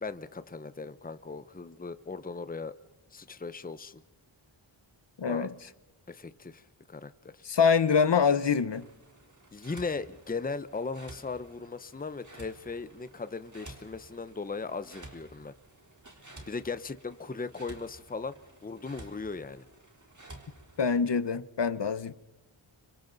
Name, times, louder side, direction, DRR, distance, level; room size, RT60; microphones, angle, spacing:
voice 1, 0.0-2.7 3.1-4.0 5.3-5.5 6.1-6.6 6.9-7.4 9.5-15.5 16.5-18.4 18.6-19.7, left 4 dB, 20° left, 0.8 m, -38 dB
voice 2, 5.2-5.5 7.4-8.8 20.8-22.1, left 6 dB, 55° left, 1.0 m, -25 dB
sound 1, 8.7-21.0, right 1 dB, 35° right, 3.8 m, -52 dB
29.5 x 25.5 x 4.0 m
wide cardioid pair, 85°, 50 cm